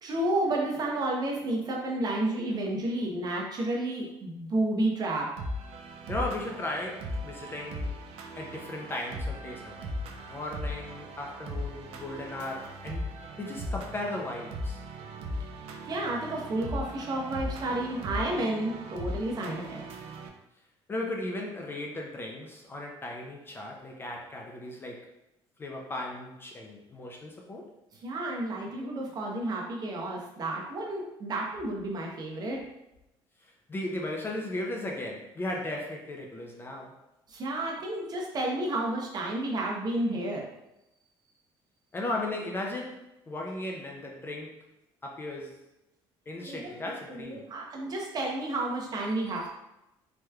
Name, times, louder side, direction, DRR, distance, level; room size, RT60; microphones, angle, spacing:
voice 1, 0.0-5.3 15.9-19.8 28.0-32.6 37.3-40.4 46.3-46.7 47.1-49.5, right 1 dB, 40° right, -1 dB, 0.7 m, -31 dB
sound 1, 5.4-20.3, equal, 75° right, 0.4 m, -38 dB
voice 2, 6.1-7.9 8.4-13.1 13.4-14.8 20.9-25.1 25.6-27.7 33.4-36.9 41.9-44.6 45.0-45.6 46.3-47.4, left 1 dB, 20° left, 0 dB, 0.4 m, -36 dB
3.3 x 3.0 x 2.3 m, 0.90 s
cardioid pair, 130°, 10 cm